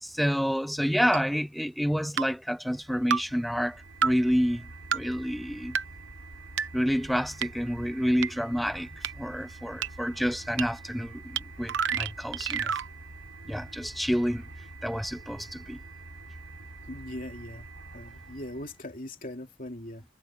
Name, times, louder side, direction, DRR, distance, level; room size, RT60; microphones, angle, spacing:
voice 1, 0.0-5.8 6.7-12.8 13.5-14.5 14.8-15.8, equal, ahead, 0.3 m, -29 dB
sound 1, 1.1-1.2 2.2-2.3 3.1-3.2 4.0-4.1 4.9-5.0 5.7-5.8 6.6-6.7 7.4-7.5 8.2-8.3 9.0-9.1 9.8-9.9 10.6-10.7 11.4-11.5 11.7-12.9, right 7 dB, 60° right, 0.9 m, -27 dB
sound 2, 2.6-18.8, right 2 dB, 85° right, 5.1 m, -46 dB
voice 2, 16.8-17.7 17.9-20.0, left 1 dB, 40° left, 3.0 m, -40 dB
head